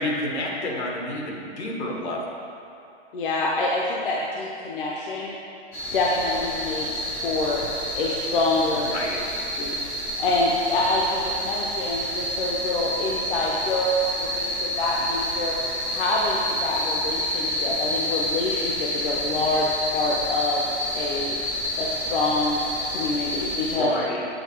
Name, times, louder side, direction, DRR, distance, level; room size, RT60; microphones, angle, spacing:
voice 1, 0.0-2.3 8.9-9.2 23.7-24.3, left 1 dB, 75° left, -1 dB, 1.5 m, -29 dB
voice 2, 3.1-5.4 5.9-7.6 7.9-8.9 9.6-9.8 10.2-15.5 15.9-19.7 19.9-20.6 20.9-21.4 21.8-22.6 22.9-23.9, left 2 dB, 50° left, -3 dB, 0.7 m, -26 dB
sound 1, 5.7-23.8, equal, 10° left, 0.4 m, -29 dB
8.1 x 3.7 x 4.4 m, 2.5 s
hypercardioid pair, 160°, 34 cm